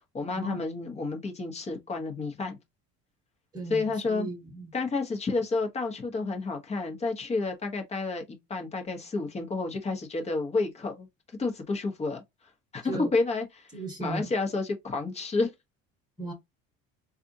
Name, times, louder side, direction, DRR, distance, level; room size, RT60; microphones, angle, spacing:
voice 1, 0.1-2.6 3.7-4.3 4.7-8.2 8.5-11.1 11.4-12.2 12.7-13.7 14.0-15.5, left 3 dB, 20° left, 1.0 m, -30 dB
voice 2, 3.5-4.7 12.8-13.1 13.7-14.3 16.2-16.3, right 3 dB, 15° right, 1.3 m, -36 dB
4.1 x 2.5 x 2.6 m
cardioid pair, 150°, 29 cm